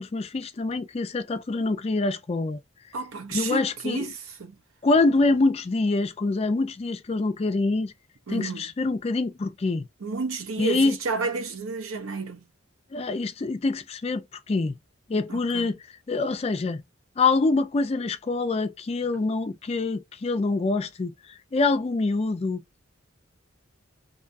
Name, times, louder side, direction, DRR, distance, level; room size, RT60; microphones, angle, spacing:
voice 1, 0.0-2.6 3.3-4.1 4.8-7.9 8.3-9.9 10.6-11.0 12.9-14.8 15.1-15.8 16.1-16.8 17.2-22.6, left 3 dB, 30° left, 0.3 m, -25 dB
voice 2, 2.9-4.5 8.3-8.6 10.0-12.4 15.3-15.7, right 4 dB, 85° right, 0.6 m, -31 dB
2.7 x 2.3 x 2.5 m
head